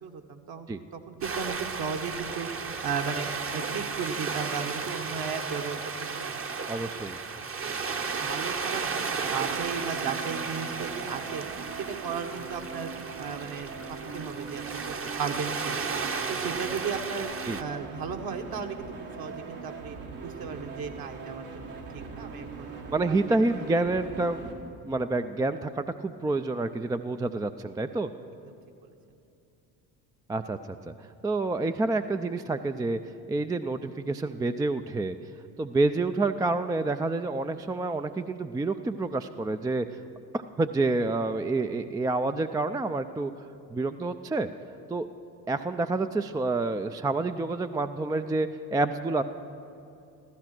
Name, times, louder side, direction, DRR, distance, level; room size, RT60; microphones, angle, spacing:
voice 1, 0.0-6.4 6.9-7.0 7.6-11.5 11.7-12.9 13.2-15.9 16.3-17.3 17.6-22.7 23.1-23.2 28.4-28.6 28.8-28.9, right 6 dB, 50° right, 5 dB, 1.5 m, -36 dB
sound 1, 1.2-17.6, right 5 dB, 30° right, 1.0 m, -34 dB
voice 2, 6.7-7.2 17.4-17.6 22.9-24.5 24.8-28.1 30.3-30.9 31.2-33.0 33.3-35.2 35.6-39.9 40.3-43.3 43.7-44.5 44.9-45.1 45.5-49.2, right 2 dB, 10° right, 9 dB, 0.4 m, -28 dB
sound 2, 9.2-24.5, right 4 dB, 70° right, 2.2 m, -41 dB
15.0 x 14.5 x 6.0 m, 2.6 s
hypercardioid pair, 65°, 47 cm